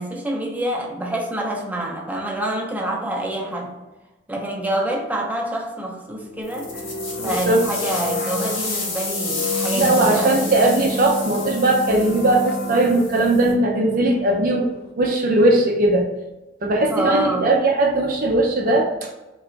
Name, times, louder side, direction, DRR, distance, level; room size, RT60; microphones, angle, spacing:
voice 1, 0.0-3.7 4.3-6.9 7.2-10.5 16.9-17.5, right 1 dB, 10° right, -2 dB, 0.7 m, -26 dB
sound 1, 6.1-14.9, left 2 dB, 50° left, 0.5 m, -31 dB
sound 2, 6.4-13.5, left 3 dB, 85° left, 1.3 m, -31 dB
voice 2, 7.2-7.6 9.7-14.7 15.0-16.1 16.6-19.1, right 2 dB, 45° right, 1 dB, 0.5 m, -19 dB
3.3 x 3.0 x 3.9 m, 1.1 s
head